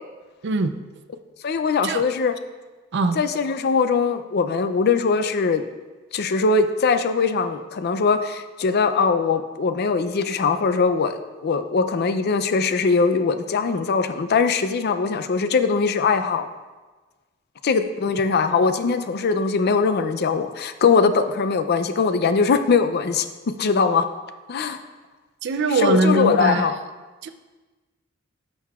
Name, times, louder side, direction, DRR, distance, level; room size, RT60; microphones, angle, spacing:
voice 1, 0.4-0.7 1.8-2.0 2.9-3.2 25.4-26.7 27.2-27.3, right 2 dB, 55° right, 9 dB, 0.4 m, -21 dB
voice 2, 1.4-2.3 3.2-5.7 6.1-16.5 17.6-23.3 23.6-24.1 24.5-24.8 25.7-26.8, left 5 dB, 50° left, 10 dB, 0.4 m, -21 dB
11.5 x 6.6 x 2.4 m, 1.3 s
head